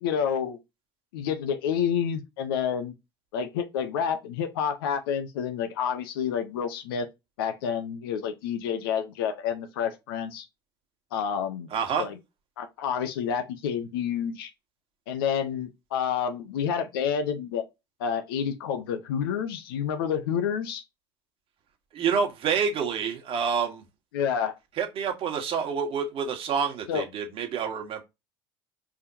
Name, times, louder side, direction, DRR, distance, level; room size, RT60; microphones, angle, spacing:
voice 1, 0.0-0.6 1.1-2.9 3.3-7.1 7.4-10.5 11.1-11.7 12.0-12.1 12.6-14.5 15.1-17.6 18.0-20.8 24.1-24.6 26.9-27.0, left 7 dB, 75° left, 0.9 m, -29 dB
voice 2, 11.7-12.1 21.9-23.8 24.8-28.0, right 6 dB, 50° right, 1.5 m, -28 dB
4.9 x 3.6 x 2.8 m
hypercardioid pair, 70°, 12 cm